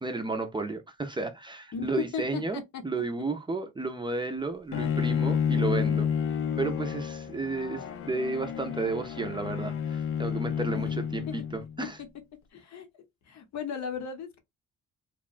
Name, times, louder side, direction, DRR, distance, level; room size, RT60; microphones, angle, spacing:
voice 1, 0.0-6.1 6.6-12.0, right 3 dB, 15° right, 0.5 m, -32 dB
voice 2, 1.7-2.8 7.4-8.1 10.7-10.9 11.3-11.4 11.8-11.9 12.5-12.9 13.3-14.4, left 6 dB, 65° left, 0.8 m, -36 dB
Bowed string instrument, 4.7-11.8, left 8 dB, 45° left, 0.4 m, -30 dB
2.9 x 2.1 x 2.4 m
cardioid pair, 90°, 30 cm